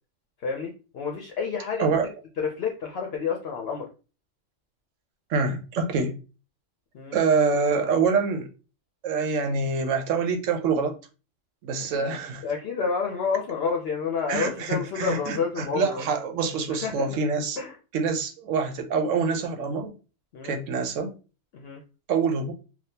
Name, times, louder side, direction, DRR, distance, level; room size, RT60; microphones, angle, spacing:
voice 1, 0.4-1.9 2.4-3.9 6.9-7.2 12.0-12.1 12.4-16.0 16.8-17.2 17.6-17.8 20.3-20.5 21.5-21.8, left 5 dB, 65° left, 0.7 m, -29 dB
voice 2, 1.8-2.1 5.3-6.1 7.1-8.5 9.0-10.9 11.6-12.5 14.3-17.6 17.9-19.9 20.4-21.1 22.1-22.5, right 4 dB, 85° right, 1.0 m, -25 dB
3.4 x 2.3 x 2.7 m
omnidirectional pair, 1.3 m